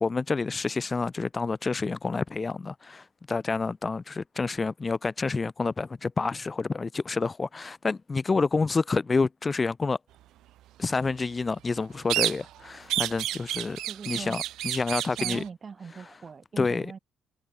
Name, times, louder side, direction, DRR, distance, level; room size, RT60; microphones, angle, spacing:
voice 1, 0.0-10.0 10.8-13.8 14.1-15.4 16.6-16.9, left 4 dB, 30° left, 1.0 m, -28 dB
sound 1, 12.1-12.6 12.9-15.5, right 14 dB, 85° right, 0.6 m, -30 dB
voice 2, 13.8-14.4 15.1-17.0, right 5 dB, 40° right, 6.3 m, -41 dB
cardioid pair, 90°, 0 cm